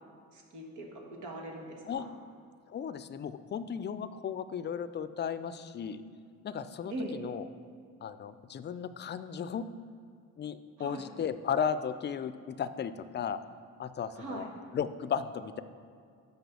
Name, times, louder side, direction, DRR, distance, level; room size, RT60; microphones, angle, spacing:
voice 1, 0.3-2.1 6.9-7.2 10.8-11.1 14.1-14.5, right 2 dB, 85° right, 1 dB, 1.4 m, -41 dB
voice 2, 2.7-6.0 6.4-7.4 8.0-9.7 10.4-13.4 13.8-14.5 14.7-15.6, left 7 dB, 35° left, 13 dB, 0.4 m, -35 dB
6.1 x 5.3 x 6.8 m, 2.3 s
cardioid pair, 90°, 30 cm